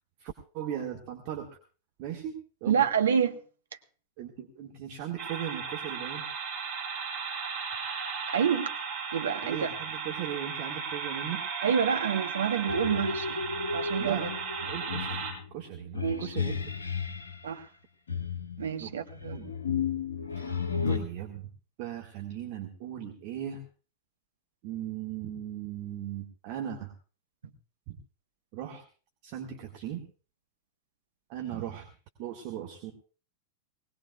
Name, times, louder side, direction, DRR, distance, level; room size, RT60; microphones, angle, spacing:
voice 1, 0.2-1.5 2.0-2.9 4.2-6.2 9.4-11.4 14.0-15.3 15.5-16.7 18.8-19.5 20.4-20.5 20.9-21.5 21.8-23.6 24.6-26.9 27.9-28.0 28.5-28.8 29.2-30.0 31.3-31.9 32.2-32.9, right 10 dB, 45° right, 1.9 m, -38 dB
voice 2, 2.7-3.4 8.3-8.7 9.1-9.7 11.6-13.4 13.7-14.3 16.0-16.3 17.4-17.6 18.6-19.4, right 7 dB, 65° right, 1.2 m, -27 dB
sound 1, 5.2-15.3, right 6 dB, 30° right, 7.0 m, -36 dB
sound 2, 12.7-17.4 18.1-21.0, left 5 dB, 70° left, 2.0 m, -33 dB
20.5 x 18.5 x 2.4 m
figure-of-eight pair, 90°, 0 cm